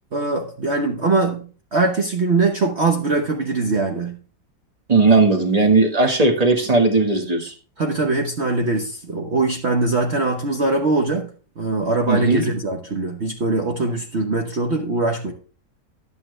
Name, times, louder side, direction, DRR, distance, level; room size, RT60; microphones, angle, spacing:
voice 1, 0.1-4.2 7.8-11.3 11.6-15.3, right 3 dB, 45° right, 1.2 m, -22 dB
voice 2, 4.9-7.5 12.1-12.5, right 3 dB, 25° right, 1.5 m, -17 dB
11.0 x 8.7 x 3.2 m
omnidirectional pair, 1.8 m